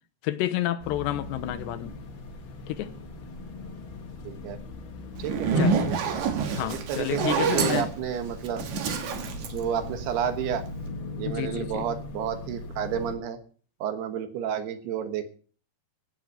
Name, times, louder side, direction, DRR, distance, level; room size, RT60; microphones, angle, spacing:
voice 1, 0.2-2.0 2.7-2.9 5.6-5.9 6.5-7.9 11.3-11.9, left 14 dB, 85° left, 3.0 m, -30 dB
sound 1, 0.8-13.2, left 2 dB, 55° left, 1.3 m, -40 dB
voice 2, 4.2-4.6 5.2-6.1 6.6-8.7 9.4-10.6 11.2-13.4 13.8-15.4, right 8 dB, 75° right, 3.2 m, -31 dB
Zipper (clothing), 5.2-10.4, right 5 dB, 60° right, 2.3 m, -27 dB
16.5 x 5.9 x 7.9 m
omnidirectional pair, 4.9 m